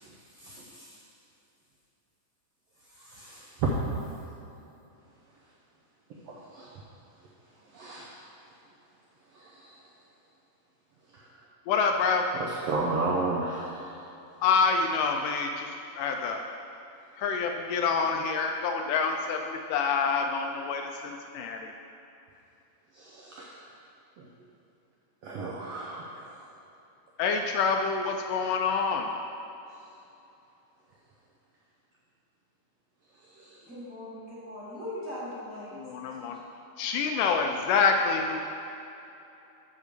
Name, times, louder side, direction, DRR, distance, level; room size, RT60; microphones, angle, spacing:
voice 1, 0.4-0.9 3.0-3.8 6.3-6.8 7.7-8.1 9.3-9.7 11.1-11.2 12.3-13.9 22.9-23.6 25.2-26.3 33.4-33.6, right 3 dB, 90° right, -4 dB, 1.3 m, -33 dB
voice 2, 11.7-12.3 14.4-16.4 17.2-21.7 27.2-29.1 35.7-36.4 36.8-38.4, left 5 dB, 80° left, 3 dB, 2.0 m, -27 dB
voice 3, 33.7-35.8 36.1-36.4, left 1 dB, 30° right, -9 dB, 1.7 m, -40 dB
9.8 x 3.7 x 6.6 m, 2.9 s
omnidirectional pair, 3.9 m